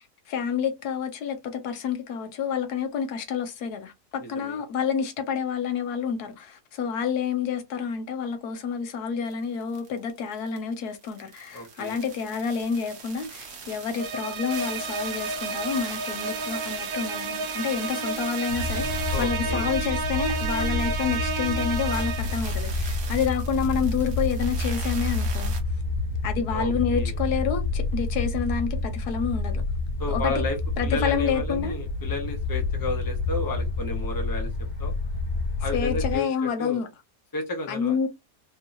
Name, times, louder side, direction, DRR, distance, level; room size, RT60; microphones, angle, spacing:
voice 1, 0.3-18.9 19.2-25.5 26.2-29.6 30.1-30.3 30.8-31.7 35.7-36.9 37.7-38.1, left 6 dB, 80° left, 1.3 m, -29 dB
voice 2, 4.2-4.6 11.5-12.0 19.1-19.6 26.5-27.1 30.0-30.6 30.8-34.5 34.8-34.9 35.6-36.8 37.3-38.0, left 1 dB, 15° left, 0.8 m, -32 dB
sound 1, 9.3-9.4 9.6-25.6, right 6 dB, 55° right, 1.2 m, -40 dB
sound 2, 14.0-22.5, right 4 dB, 75° right, 1.2 m, -31 dB
sound 3, 18.5-36.2, left 3 dB, 60° left, 1.6 m, -28 dB
3.6 x 2.8 x 2.6 m
omnidirectional pair, 1.6 m